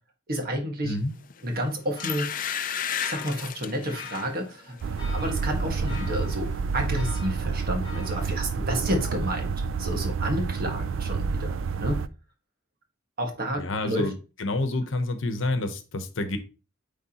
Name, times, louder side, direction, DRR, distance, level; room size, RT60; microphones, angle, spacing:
voice 1, 0.3-1.0 1.4-2.3 3.0-4.8 5.1-9.5 9.8-12.0 13.2-14.1, equal, 50° right, 3 dB, 1.6 m, -30 dB
sound 1, 1.3-1.5 2.0-4.3 4.8-5.0 5.3-6.1 6.3-6.4, left 9 dB, 45° left, 0.4 m, -33 dB
sound 2, 1.6-8.8, left 6 dB, 25° left, 1.6 m, -46 dB
sound 3, 4.8-12.1, right 5 dB, 75° right, 0.4 m, -29 dB
voice 2, 13.6-16.4, left 2 dB, 75° left, 9 dB, 0.9 m, -28 dB
9.3 x 3.5 x 2.9 m, 0.32 s
head